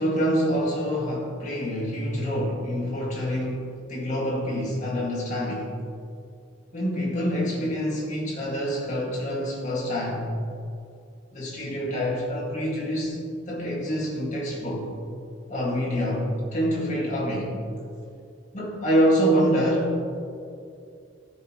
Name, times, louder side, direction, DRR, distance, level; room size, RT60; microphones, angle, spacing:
voice 1, 0.0-5.7 6.7-10.3 11.3-13.2 13.5-14.9 15.5-17.6 18.5-19.9, equal, 40° left, -5 dB, 2.3 m, -26 dB
13.0 x 6.5 x 3.2 m, 2.5 s
head